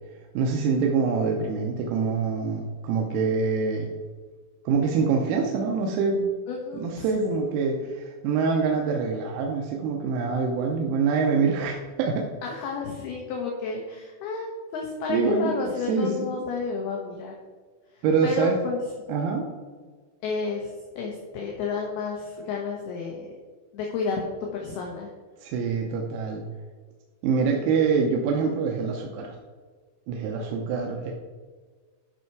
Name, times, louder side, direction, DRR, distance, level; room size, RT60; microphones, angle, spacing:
voice 1, 0.4-3.9 4.7-6.4 6.7-12.3 15.1-16.3 18.0-18.6 19.1-19.5 25.4-26.4 27.2-29.4 30.1-31.1, right 5 dB, 90° right, 1 dB, 3.7 m, -25 dB
voice 2, 6.5-7.3 12.4-17.3 17.9-18.8 20.2-23.3 23.7-24.2 24.5-25.1, left 4 dB, 75° left, 0 dB, 2.3 m, -31 dB
11.5 x 5.7 x 4.6 m, 1.5 s
omnidirectional pair, 6.0 m